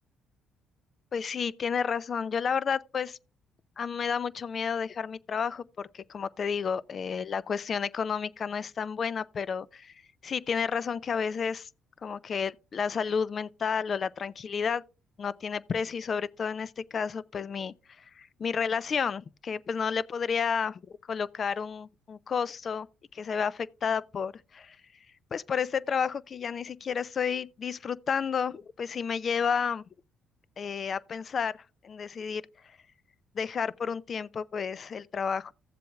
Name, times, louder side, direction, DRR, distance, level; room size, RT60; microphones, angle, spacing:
voice 1, 1.1-3.2 3.8-11.7 12.0-14.8 15.2-20.8 21.1-22.9 23.1-24.8 25.3-29.8 30.6-31.6 31.8-32.8 33.3-35.5, left 6 dB, 50° left, 0.5 m, -31 dB
15.0 x 7.6 x 2.3 m
supercardioid pair, 65°, 0 cm